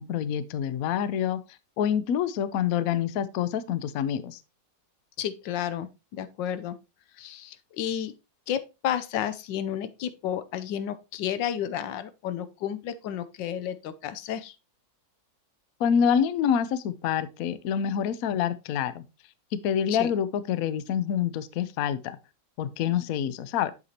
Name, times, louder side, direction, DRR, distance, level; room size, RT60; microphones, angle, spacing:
voice 1, 0.0-1.4 1.8-4.4 15.8-19.0 19.6-22.2 22.6-23.7, left 8 dB, 65° left, 0.9 m, -26 dB
voice 2, 5.2-6.8 7.2-8.1 8.5-14.6 19.9-20.1, left 10 dB, 85° left, 1.3 m, -32 dB
8.1 x 6.7 x 2.8 m
omnidirectional pair, 1.9 m